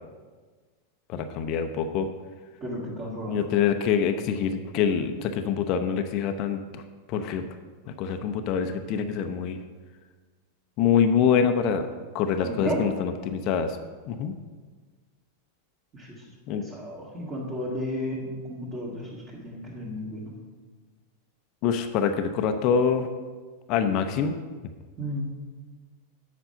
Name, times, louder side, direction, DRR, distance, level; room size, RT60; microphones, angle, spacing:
voice 1, 1.1-2.1 3.3-6.8 7.1-7.4 7.9-9.6 10.8-11.9 12.1-13.8 14.1-14.3 16.5-16.6 21.6-23.1 23.7-24.4, left 7 dB, 40° left, 7 dB, 0.6 m, -25 dB
voice 2, 2.6-3.4 12.4-12.8 15.9-20.3 25.0-25.3, equal, 25° right, -6 dB, 1.9 m, -33 dB
7.9 x 5.3 x 6.8 m, 1.4 s
figure-of-eight pair, 90°, 0 cm